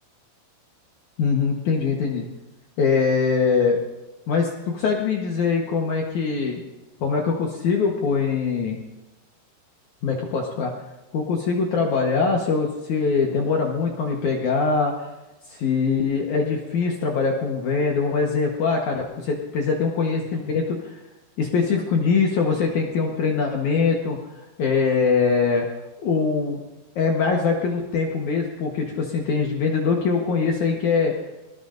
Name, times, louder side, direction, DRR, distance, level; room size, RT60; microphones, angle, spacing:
voice 1, 1.2-2.2 2.8-3.8 4.3-6.6 7.0-8.8 10.0-10.7 11.1-15.1 15.5-20.9 21.4-24.2 24.6-25.6 26.0-26.6 26.9-31.1, left 5 dB, 90° left, 0 dB, 1.6 m, -22 dB
24.5 x 19.0 x 2.6 m, 1.0 s
omnidirectional pair, 5.4 m